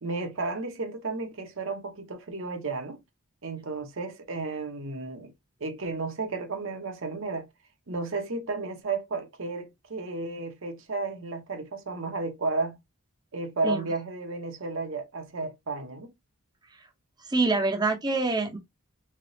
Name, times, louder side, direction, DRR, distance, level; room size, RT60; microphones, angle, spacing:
voice 1, 0.0-3.0 3.4-5.3 5.6-7.5 7.9-12.8 13.3-16.1, right 3 dB, 60° right, 0.8 m, -33 dB
voice 2, 17.3-18.6, right 3 dB, 20° right, 0.7 m, -25 dB
3.6 x 3.4 x 2.6 m
head